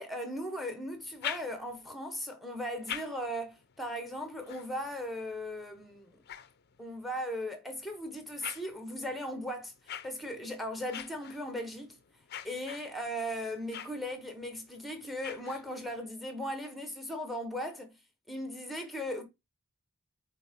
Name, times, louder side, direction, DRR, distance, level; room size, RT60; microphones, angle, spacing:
voice 1, 0.0-6.2 6.8-12.0 12.4-18.0 18.3-19.2, equal, ahead, 1.2 m, -38 dB
sound 1, 0.9-1.9 2.5-7.2 7.7-16.0, left 9 dB, 45° left, 0.6 m, -46 dB
8.2 x 3.7 x 3.7 m
head